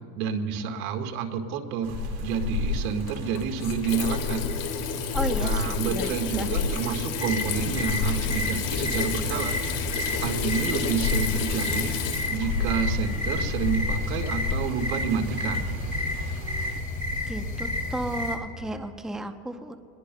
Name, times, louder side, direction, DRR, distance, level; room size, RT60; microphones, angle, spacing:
voice 1, 0.2-4.5 5.4-9.8 10.2-15.7, right 6 dB, 85° right, 4 dB, 1.8 m, -29 dB
sound 1, 1.8-16.8, right 6 dB, 60° right, 2.2 m, -41 dB
Water tap faucet / Sink (filling or washing), 1.9-14.6, left 6 dB, 50° left, 2.0 m, -30 dB
voice 2, 5.1-6.5 17.3-19.7, right 1 dB, ahead, 7 dB, 0.7 m, -33 dB
sound 2, 7.2-18.4, left 2 dB, 20° left, 2.2 m, -31 dB
27.5 x 21.0 x 2.3 m, 2.6 s
supercardioid pair, 120°, 41 cm